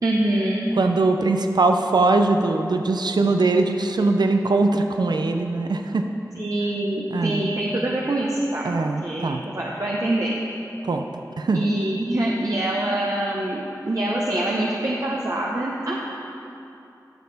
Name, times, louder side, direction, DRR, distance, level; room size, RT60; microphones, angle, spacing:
voice 1, 0.0-0.7 6.3-8.7 9.0-10.4 11.5-15.9, right 1 dB, 55° right, -3 dB, 0.9 m, -25 dB
voice 2, 0.8-6.1 7.1-7.5 8.6-9.4 10.8-11.0 11.4-11.7, right 3 dB, 80° right, 5 dB, 0.5 m, -21 dB
12.5 x 6.6 x 4.1 m, 2.8 s
wide cardioid pair, 65°, 7 cm